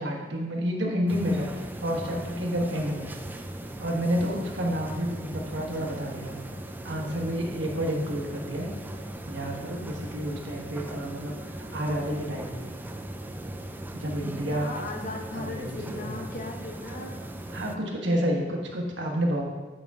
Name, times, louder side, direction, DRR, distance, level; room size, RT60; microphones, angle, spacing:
voice 1, 0.0-3.1 3.8-6.3 6.8-8.7 9.2-12.7 13.9-14.7 15.3-16.2 17.5-19.4, equal, 80° right, 0 dB, 1.3 m, -30 dB
sound 1, 1.1-17.7, right 1 dB, 10° right, 0.3 m, -38 dB
voice 2, 5.6-6.0 14.5-17.1, left 2 dB, 45° left, 1 dB, 0.9 m, -38 dB
8.9 x 5.4 x 3.6 m, 1.3 s
head